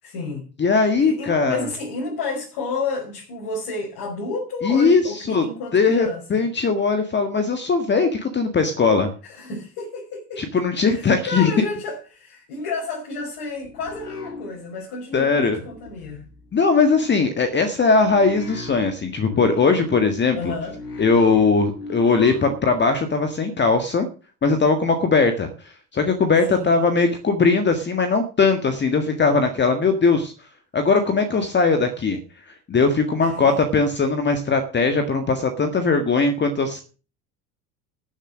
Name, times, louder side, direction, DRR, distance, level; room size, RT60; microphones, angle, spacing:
voice 1, 0.0-0.5 1.0-6.2 9.2-10.5 10.9-16.2 20.3-20.8 26.5-26.7 33.2-33.6, left 3 dB, 50° left, 5.8 m, -31 dB
voice 2, 0.6-1.7 4.6-5.0 5.3-5.4 5.7-9.1 10.4-11.5 15.1-15.6 16.5-20.5 21.0-24.1 24.4-30.3 30.7-32.2 32.5-36.8, left 4 dB, 25° left, 1.7 m, -20 dB
sound 1, 13.2-15.0 15.3-22.8, left 2 dB, 75° left, 3.1 m, -39 dB
13.5 x 7.3 x 6.3 m
figure-of-eight pair, 70°, 47 cm